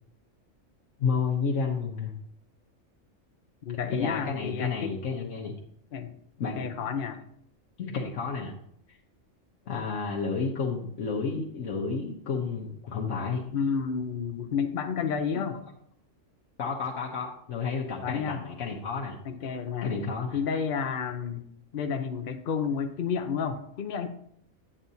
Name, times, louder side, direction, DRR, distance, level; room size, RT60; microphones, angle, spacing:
voice 1, 1.0-2.1 3.7-5.5 6.4-6.8 7.8-8.5 8.9-9.0 9.7-13.4 16.6-19.2 19.8-20.4, left 5 dB, 85° left, -2 dB, 1.3 m, -31 dB
voice 2, 3.6-4.9 5.9-6.1 6.6-7.2 13.5-15.6 18.0-18.4 19.2-19.9 20.3-21.5 21.7-24.1, left 6 dB, 50° left, 7 dB, 0.8 m, -30 dB
9.5 x 8.6 x 2.7 m, 0.67 s
omnidirectional pair, 1.3 m